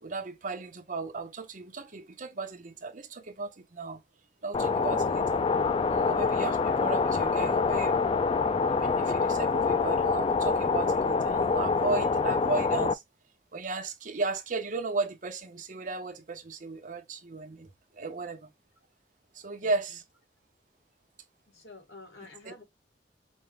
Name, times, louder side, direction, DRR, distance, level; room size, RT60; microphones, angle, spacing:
voice 1, 0.0-4.0 4.4-5.4 5.9-8.2 8.7-13.0 13.5-18.5 19.3-20.0 22.4-22.6, right 3 dB, 50° right, 0.8 m, -35 dB
sound 1, 4.5-12.9, left 4 dB, 30° left, 0.3 m, -26 dB
voice 2, 21.5-22.6, left 3 dB, 85° left, 2.3 m, -49 dB
5.3 x 2.2 x 3.2 m
head